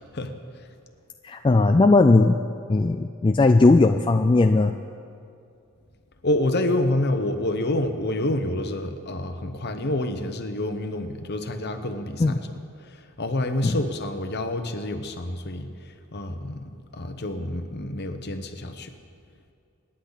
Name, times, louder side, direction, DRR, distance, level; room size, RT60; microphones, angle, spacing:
voice 1, 0.1-0.6 6.2-12.5 12.8-16.6 16.9-18.9, left 1 dB, 50° left, 7 dB, 1.0 m, -28 dB
voice 2, 1.2-2.4 2.7-4.7 12.2-12.3 13.6-13.8, left 3 dB, 25° left, 6 dB, 0.3 m, -18 dB
25.5 x 10.0 x 4.1 m, 2.5 s
head